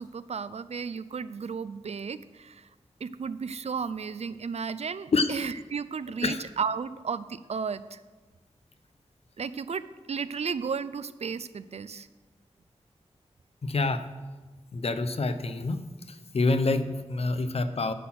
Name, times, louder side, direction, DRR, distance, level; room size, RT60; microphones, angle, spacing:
voice 1, 0.0-2.7 3.0-8.0 9.4-12.1, right 6 dB, 70° right, 15 dB, 0.4 m, -34 dB
voice 2, 13.6-14.1 14.7-15.8 16.1-17.9, left 3 dB, 60° left, 10 dB, 0.6 m, -27 dB
9.9 x 6.0 x 5.9 m, 1.2 s
wide cardioid pair, 95°, 11 cm